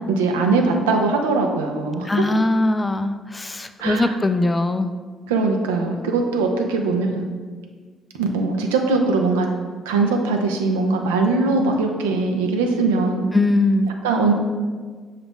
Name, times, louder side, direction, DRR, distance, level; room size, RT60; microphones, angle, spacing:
voice 1, 0.1-2.3 3.8-4.1 5.3-7.3 8.1-9.5 9.9-13.3 14.0-14.3, right 3 dB, 80° right, 3 dB, 0.4 m, -21 dB
voice 2, 2.0-4.9 13.3-13.9, left 2 dB, 20° left, 9 dB, 0.3 m, -20 dB
5.8 x 2.4 x 3.5 m, 1.5 s
hypercardioid pair, 45°, 0 cm